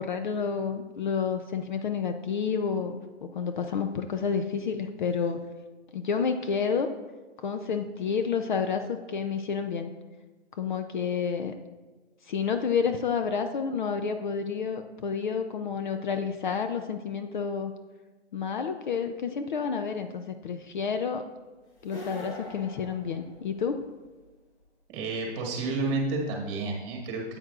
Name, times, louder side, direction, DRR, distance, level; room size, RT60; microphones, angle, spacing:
voice 1, 0.0-5.4 5.9-6.9 7.4-9.9 10.5-11.5 12.3-17.7 18.3-21.2 21.8-23.8, left 6 dB, 45° left, 8 dB, 0.5 m, -30 dB
sound 1, 21.8-23.8, equal, 80° left, 2.7 m, -42 dB
voice 2, 24.9-27.4, right 3 dB, 25° right, 0 dB, 1.7 m, -30 dB
8.8 x 8.1 x 2.4 m, 1.2 s
hypercardioid pair, 155°, 34 cm